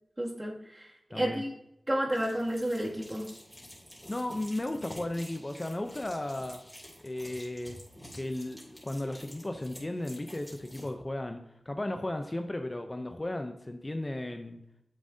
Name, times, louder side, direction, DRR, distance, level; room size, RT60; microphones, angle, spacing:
voice 1, 0.2-1.5 1.9-3.3, right 1 dB, 25° right, -2 dB, 2.2 m, -31 dB
voice 2, 1.1-1.4 4.1-6.6 7.0-7.8 8.1-11.4 11.7-14.6, left 1 dB, 25° left, 6 dB, 0.6 m, -35 dB
sound 1, 2.1-10.9, equal, 5° left, 2.9 m, -50 dB
9.7 x 7.2 x 2.7 m, 0.84 s
wide cardioid pair, 65°, 0 cm